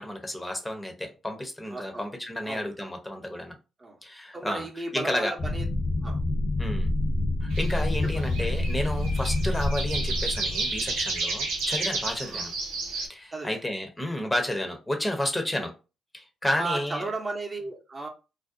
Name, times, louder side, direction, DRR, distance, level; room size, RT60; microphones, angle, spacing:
voice 1, 0.0-3.5 4.0-4.7 4.9-5.4 6.6-6.9 7.4-12.5 13.1-15.7 16.1-17.0, left 1 dB, 15° left, 0.7 m, -31 dB
voice 2, 1.7-2.1 2.4-2.6 3.8-4.0 4.3-5.6 6.0-6.2 8.1-8.2 12.2-12.5 13.3-13.6 16.6-18.1, right 3 dB, 35° right, 0.7 m, -35 dB
sound 1, 5.4-11.5, left 1 dB, 55° left, 0.8 m, -28 dB
sound 2, 7.5-13.1, right 3 dB, 90° right, 0.6 m, -31 dB
2.5 x 2.1 x 2.5 m
supercardioid pair, 50°, 0 cm